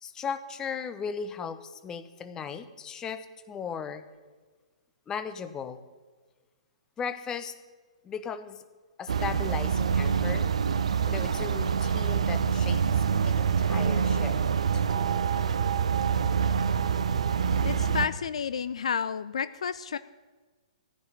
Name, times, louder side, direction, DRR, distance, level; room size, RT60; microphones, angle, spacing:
voice 1, 0.0-4.0 5.1-5.8 7.0-7.5 8.0-8.6 9.0-10.4 11.1-14.3 14.7-14.8, left 6 dB, 20° left, 11 dB, 0.9 m, -37 dB
sound 1, 9.1-18.1, right 6 dB, 70° right, 0.8 m, -26 dB
voice 2, 17.6-20.0, left 7 dB, 65° left, 15 dB, 0.5 m, -31 dB
15.0 x 5.8 x 9.8 m, 1.4 s
figure-of-eight pair, 120°, 4 cm